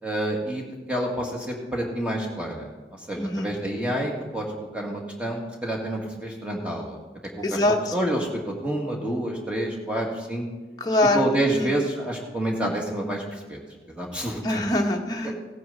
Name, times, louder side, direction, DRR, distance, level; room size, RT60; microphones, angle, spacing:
voice 1, 0.0-2.7 3.0-4.5 4.7-7.0 7.4-7.6 7.9-10.5 11.1-13.6 13.9-14.6, right 1 dB, 5° right, -1 dB, 2.0 m, -28 dB
voice 2, 3.2-3.5 7.4-7.9 10.8-11.2 11.5-11.7 14.4-15.3, left 1 dB, 20° left, 1 dB, 1.1 m, -23 dB
17.0 x 9.3 x 4.1 m, 1.2 s
head